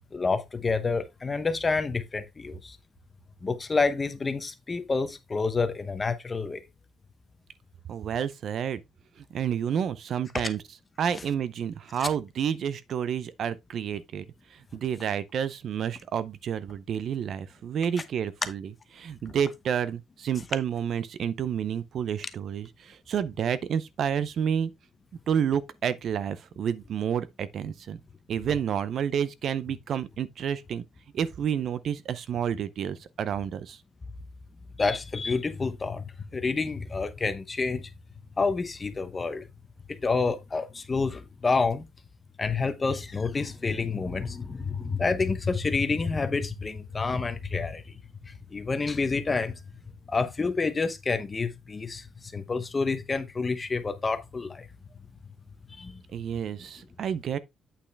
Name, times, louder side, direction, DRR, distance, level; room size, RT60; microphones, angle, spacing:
voice 1, 0.1-2.8 3.4-6.6 10.3-10.4 12.0-12.1 34.8-36.1 36.3-37.9 38.4-39.4 40.0-41.9 42.4-49.6 50.1-54.7 55.7-56.0, left 4 dB, 20° left, 0.9 m, -28 dB
voice 2, 7.9-8.8 9.2-10.6 11.0-14.2 14.5-24.7 25.3-28.0 28.3-30.8 31.1-33.8 56.1-57.4, right 8 dB, 45° right, 0.6 m, -30 dB
8.6 x 5.5 x 3.3 m
cardioid pair, 170°, 0 cm